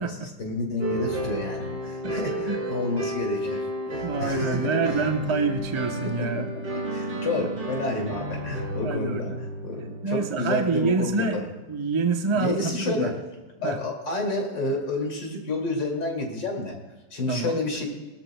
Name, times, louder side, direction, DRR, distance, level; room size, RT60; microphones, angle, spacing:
voice 1, 0.4-3.6 3.9-4.8 6.0-6.4 6.9-9.3 9.6-11.5 12.4-13.2 13.6-16.7 17.1-17.9, left 2 dB, 75° left, 1 dB, 3.2 m, -29 dB
sound 1, 0.8-10.6, right 1 dB, 75° right, 4.7 m, -32 dB
voice 2, 4.0-6.5 7.4-7.5 8.8-9.5 10.0-11.4 11.7-13.1 13.6-13.8 17.3-17.6, right 4 dB, 25° right, 4 dB, 0.6 m, -26 dB
23.0 x 13.5 x 2.3 m, 1.2 s
omnidirectional pair, 1.9 m